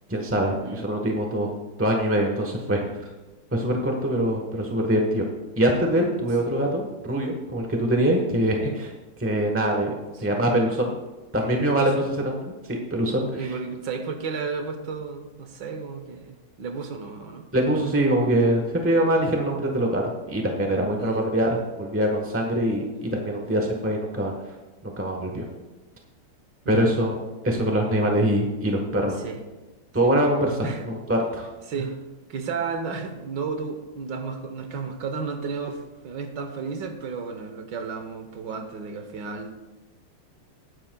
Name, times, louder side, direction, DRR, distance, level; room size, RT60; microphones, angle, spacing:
voice 1, 0.1-1.5 1.8-2.9 3.5-5.2 5.6-8.9 9.2-9.9 10.2-11.0 11.3-12.4 12.7-13.5 17.5-24.3 24.8-25.4 26.7-27.1 27.4-29.1 29.9-31.5, right 1 dB, 10° right, 1 dB, 0.7 m, -23 dB
voice 2, 11.7-12.1 13.1-17.5 21.0-21.3 26.6-26.9 29.0-29.4 30.0-30.3 30.6-30.9 31.7-32.0 32.3-39.5, right 5 dB, 65° right, 7 dB, 1.5 m, -33 dB
19.5 x 9.9 x 2.3 m, 1.2 s
omnidirectional pair, 2.2 m